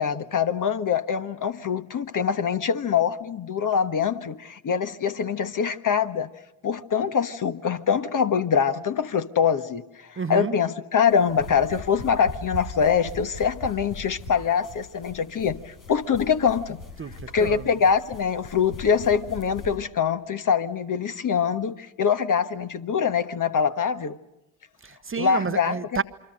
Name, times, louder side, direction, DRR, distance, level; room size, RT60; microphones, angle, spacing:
voice 1, 0.0-6.3 6.6-16.8 17.3-24.2 25.2-25.8, left 7 dB, 40° left, 1.5 m, -24 dB
voice 2, 10.2-10.5 17.0-17.7 24.8-26.0, right 5 dB, 25° right, 1.2 m, -30 dB
sound 1, 11.1-19.8, left 2 dB, 90° left, 6.8 m, -40 dB
28.0 x 24.0 x 6.6 m
hypercardioid pair, 60°, 49 cm